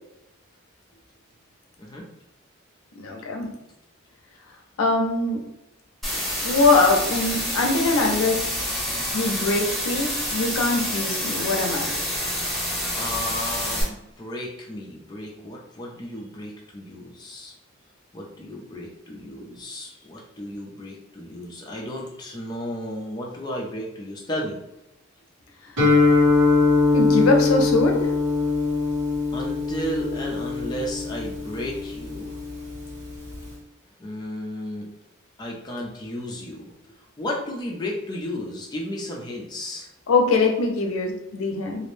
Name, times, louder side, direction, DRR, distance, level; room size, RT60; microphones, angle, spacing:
voice 1, 3.0-3.5 4.8-5.4 6.4-8.6 9.1-11.9 26.9-28.1 40.1-41.9, left 3 dB, 85° left, 2 dB, 0.5 m, -22 dB
sound 1, 6.0-13.8, equal, ahead, 0.9 m, -28 dB
voice 2, 12.9-17.5 18.1-24.6 29.3-32.4 34.0-34.9 35.4-39.9, left 1 dB, 20° left, -2 dB, 0.4 m, -34 dB
Guitar, 25.8-33.5, left 3 dB, 60° right, 1.3 m, -22 dB
2.5 x 2.0 x 3.1 m, 0.89 s
head